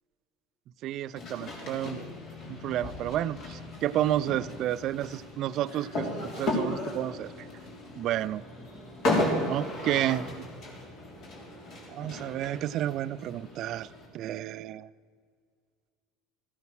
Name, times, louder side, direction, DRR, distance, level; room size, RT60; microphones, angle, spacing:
voice 1, 0.8-2.0 2.5-7.5 8.0-8.4 9.4-10.3 11.9-13.9 14.1-14.9, right 12 dB, 55° right, 18 dB, 0.4 m, -31 dB
sound 1, 1.2-14.1, left 2 dB, 55° left, 3.4 m, -35 dB
14.5 x 9.3 x 6.2 m, 2.1 s
supercardioid pair, 90°, 0 cm